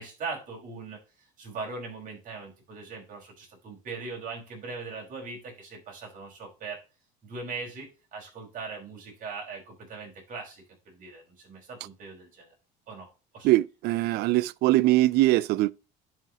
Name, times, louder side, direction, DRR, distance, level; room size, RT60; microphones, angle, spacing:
voice 1, 0.0-6.8 7.2-12.5 12.9-13.5, right 4 dB, 50° right, 4.9 m, -40 dB
voice 2, 13.4-15.7, right 17 dB, 65° right, 0.4 m, -22 dB
11.0 x 4.9 x 2.9 m
cardioid pair, 110°, 18 cm